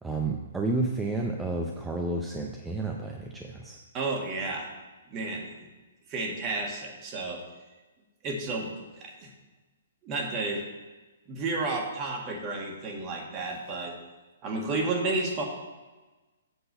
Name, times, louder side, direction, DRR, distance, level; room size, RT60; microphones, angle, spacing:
voice 1, 0.0-3.8, right 2 dB, 10° right, 1 dB, 0.6 m, -31 dB
voice 2, 3.9-4.7 5.1-5.5 6.1-7.4 8.2-8.7 9.0-9.3 10.0-10.6 11.3-13.9 14.4-15.4, right 3 dB, 30° right, 1 dB, 1.7 m, -31 dB
7.9 x 3.9 x 6.7 m, 1.2 s
hypercardioid pair, 135°, 0 cm